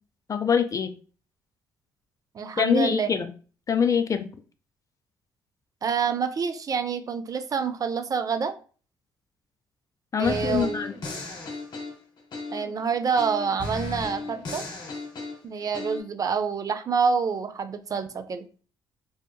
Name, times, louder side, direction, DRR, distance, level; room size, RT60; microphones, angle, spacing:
voice 1, 0.3-0.9 2.6-3.3 3.7-4.3 10.1-10.9, left 6 dB, 35° left, 9 dB, 0.4 m, -24 dB
voice 2, 2.3-3.1 5.8-8.5 10.2-10.8 12.5-14.6 15.4-18.5, right 6 dB, 40° right, 10 dB, 0.4 m, -27 dB
sound 1, 10.2-12.8 13.2-16.0, left 3 dB, 50° left, 0.8 m, -35 dB
2.7 x 2.3 x 2.2 m, 0.38 s
hypercardioid pair, 50°, 9 cm